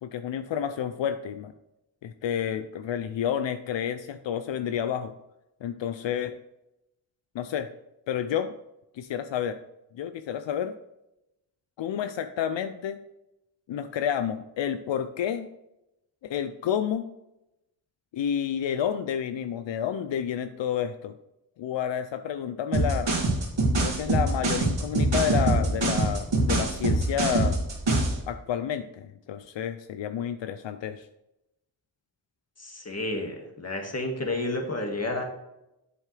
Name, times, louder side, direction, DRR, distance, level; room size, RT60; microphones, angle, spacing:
voice 1, 0.0-1.5 2.0-5.1 5.6-6.4 7.3-7.7 8.1-8.6 8.9-9.6 9.9-10.7 11.8-13.0 13.7-15.5 16.2-17.0 18.1-21.1 21.6-23.1 23.8-27.6 28.3-31.1, left 9 dB, 85° left, 10 dB, 0.5 m, -30 dB
sound 1, 22.7-28.2, right 2 dB, 80° right, 2.5 m, -24 dB
voice 2, 32.6-35.2, left 2 dB, 35° left, 2 dB, 1.9 m, -31 dB
8.4 x 7.2 x 3.3 m, 0.89 s
cardioid pair, 55°, 43 cm